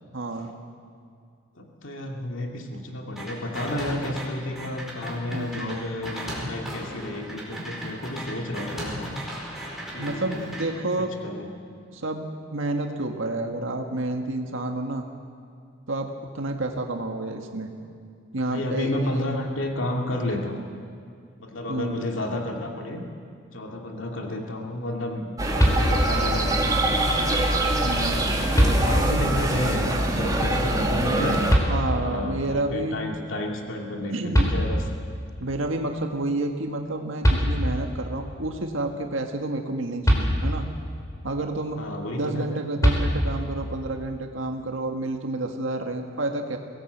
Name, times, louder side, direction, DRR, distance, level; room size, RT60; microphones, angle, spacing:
voice 1, 0.1-0.5 5.3-5.8 9.9-11.1 11.9-15.0 15.9-17.7 18.3-19.2 21.7-22.1 27.8-28.2 31.7-33.0 34.1-34.6 35.4-40.7 41.2-41.8 42.1-46.6, right 2 dB, 90° right, 3 dB, 1.8 m, -29 dB
voice 2, 1.6-9.1 9.9-10.5 11.0-11.5 18.5-20.6 21.4-23.0 23.5-27.0 28.0-28.2 28.5-34.8 41.8-42.5, left 1 dB, 80° left, 1 dB, 2.3 m, -31 dB
sound 1, 3.2-4.2 4.6-10.6, equal, ahead, 4.7 m, -36 dB
sound 2, 25.4-31.5, right 1 dB, 20° right, 2.3 m, -24 dB
sound 3, 25.6-26.3 27.8-27.9 28.5-29.3 31.5-32.2 34.0-34.1 34.3-35.2 36.9-37.0 37.2-38.0 40.0-40.9 42.8-43.6, equal, 15° left, 4.2 m, -22 dB
22.5 x 18.0 x 8.0 m, 2.3 s
head